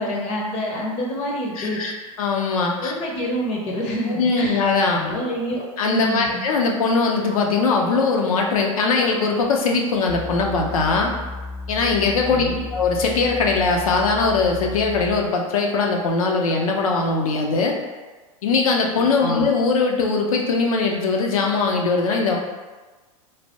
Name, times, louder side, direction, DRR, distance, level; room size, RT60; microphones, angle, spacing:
voice 1, 0.0-1.8 2.8-4.6 4.9-6.4 12.3-12.6 19.0-19.5, equal, 35° left, -1 dB, 0.7 m, -27 dB
voice 2, 1.6-2.9 4.1-5.0 5.8-11.1 11.7-12.4 12.7-17.8 18.4-22.4, left 4 dB, 75° left, 1 dB, 0.6 m, -21 dB
sound 1, 10.1-15.4, left 3 dB, 15° right, 0.5 m, -34 dB
3.2 x 2.2 x 2.8 m, 1.3 s
hypercardioid pair, 105°, 18 cm